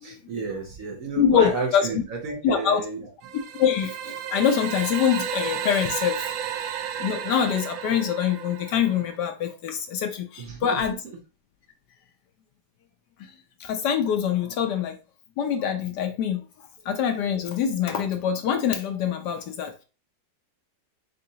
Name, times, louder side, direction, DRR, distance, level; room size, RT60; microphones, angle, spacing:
voice 1, 0.0-3.1 10.4-11.0, right 4 dB, 55° right, 1.0 m, -32 dB
voice 2, 1.2-1.9 2.4-2.8 3.6-6.3 7.0-10.9 13.2-13.3 13.6-15.0 15.4-16.4 16.9-19.8, left 8 dB, 70° left, 1.1 m, -24 dB
sound 1, 3.2-9.2, right 9 dB, 80° right, 1.3 m, -33 dB
4.1 x 3.8 x 2.7 m
omnidirectional pair, 2.0 m